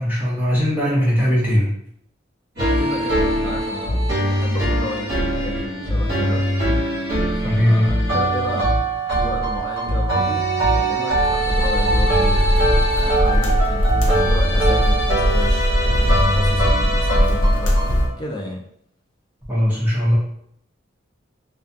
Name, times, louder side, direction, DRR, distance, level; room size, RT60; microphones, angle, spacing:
voice 1, 0.0-1.7 7.4-7.8 19.5-20.2, equal, 10° right, -7 dB, 0.7 m, -19 dB
sound 1, 2.6-18.1, right 1 dB, 50° right, 1.0 m, -21 dB
voice 2, 2.8-6.5 7.4-8.8 9.1-12.5 13.0-17.8 18.2-18.6, left 1 dB, 20° left, 0 dB, 0.4 m, -32 dB
sound 2, 11.4-18.0, equal, 70° left, 0.6 m, -20 dB
2.3 x 2.2 x 2.6 m, 0.69 s
head